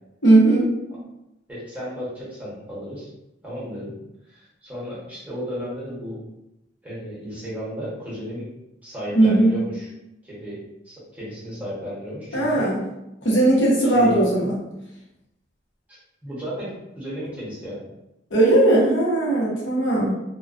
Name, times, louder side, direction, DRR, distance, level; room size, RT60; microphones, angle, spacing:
voice 1, 0.2-0.6 9.1-9.5 12.3-12.8 13.2-14.6 18.3-20.1, right 2 dB, 90° left, -5 dB, 0.8 m, -18 dB
voice 2, 1.5-3.1 3.4-3.9 4.2-6.2 6.8-8.5 8.8-9.9 10.2-10.6 10.8-12.7 13.8-14.2 15.9-16.7 17.0-17.8, equal, 10° right, -9 dB, 0.9 m, -34 dB
2.3 x 2.2 x 2.4 m, 0.90 s
head